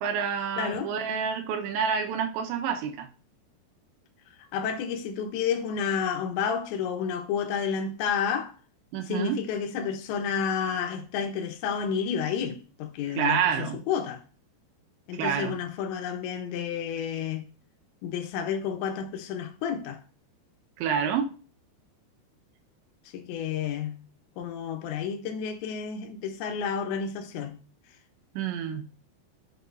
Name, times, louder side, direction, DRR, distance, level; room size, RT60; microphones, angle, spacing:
voice 1, 0.0-3.1 8.9-9.4 13.2-13.8 15.1-15.6 20.8-21.3 28.3-28.8, right 7 dB, 90° right, 3.4 m, -28 dB
voice 2, 0.6-0.9 4.5-8.5 9.1-14.2 15.1-17.5 18.0-20.0 23.1-24.0 24.4-27.6, left 7 dB, 90° left, 3.4 m, -30 dB
10.5 x 7.2 x 2.6 m
omnidirectional pair, 5.0 m